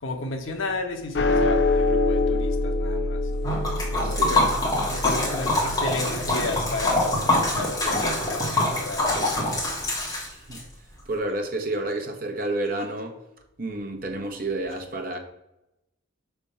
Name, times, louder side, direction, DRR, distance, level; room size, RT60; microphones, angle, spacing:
voice 1, 0.0-3.2 3.9-4.5 4.9-9.6, left 3 dB, 80° left, 4 dB, 1.0 m, -33 dB
sound 1, 1.1-7.7, left 2 dB, 55° left, 0.4 m, -26 dB
Liquid, 3.4-10.6, left 1 dB, 20° left, 1.4 m, -25 dB
voice 2, 4.0-4.4 10.2-10.6 11.1-13.2 13.6-15.2, right 2 dB, 45° right, 4 dB, 0.9 m, -30 dB
5.7 x 3.5 x 5.4 m, 0.89 s
head